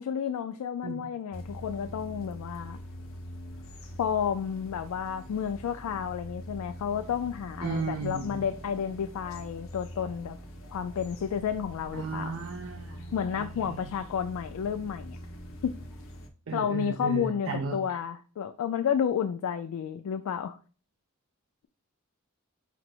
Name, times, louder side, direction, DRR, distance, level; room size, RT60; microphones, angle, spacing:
voice 1, 0.0-2.8 4.0-10.4 10.7-12.4 13.1-15.2 15.6-15.8 16.5-20.6, left 8 dB, 85° left, 0.3 m, -31 dB
sound 1, 1.3-16.3, equal, 65° left, 0.7 m, -44 dB
voice 2, 7.6-8.4 11.9-13.1 13.6-13.9 16.5-17.8, right 4 dB, 65° right, 0.5 m, -34 dB
5.0 x 2.0 x 4.4 m
head